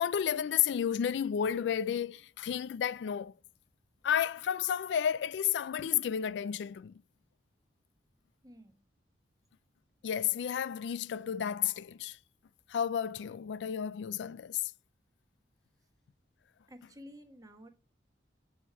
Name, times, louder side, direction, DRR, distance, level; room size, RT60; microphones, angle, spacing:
voice 1, 0.0-3.3 4.0-6.9 10.0-12.2 12.7-14.7, left 9 dB, 75° left, 0.3 m, -32 dB
voice 2, 8.4-8.7 16.7-17.7, equal, 20° right, 1.2 m, -51 dB
7.3 x 6.2 x 4.6 m
head